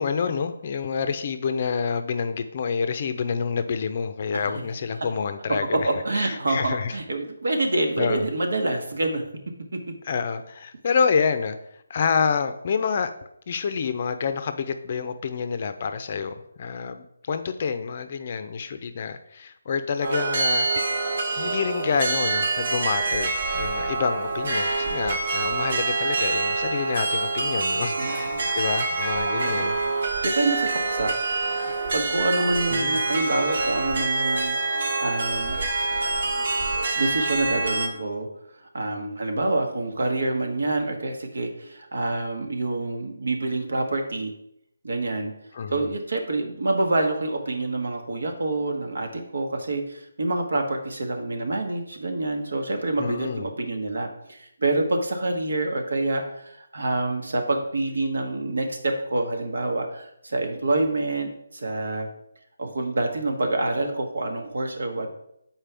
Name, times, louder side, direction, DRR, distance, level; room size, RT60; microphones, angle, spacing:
voice 1, 0.0-6.9 8.0-8.3 10.0-11.6 11.9-13.1 13.5-20.7 21.4-29.7 32.7-33.0 45.5-45.9 53.0-53.5, left 6 dB, 35° left, 9 dB, 0.5 m, -28 dB
voice 2, 5.7-9.2 28.0-28.5 29.4-31.1 31.9-35.6 37.0-38.3 38.7-44.3 44.8-45.3 45.7-62.1 62.6-65.1, right 2 dB, 75° right, 4 dB, 1.3 m, -27 dB
sound 1, 20.0-37.9, right 3 dB, 50° right, 1.2 m, -26 dB
7.4 x 4.4 x 3.4 m, 0.76 s
hypercardioid pair, 170°, 0 cm